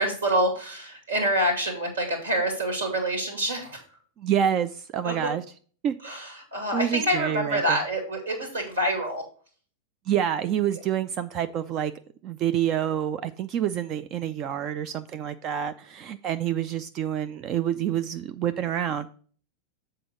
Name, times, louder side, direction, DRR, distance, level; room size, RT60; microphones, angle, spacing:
voice 1, 0.0-3.8 5.0-5.3 6.0-9.2 10.7-10.8, right 1 dB, 70° right, 4 dB, 2.6 m, -27 dB
voice 2, 4.2-5.4 5.8-6.0 6.7-7.8 10.1-11.9 12.2-19.1, right 10 dB, 35° right, 11 dB, 0.4 m, -27 dB
7.7 x 3.8 x 6.1 m, 0.44 s
figure-of-eight pair, 90°, 0 cm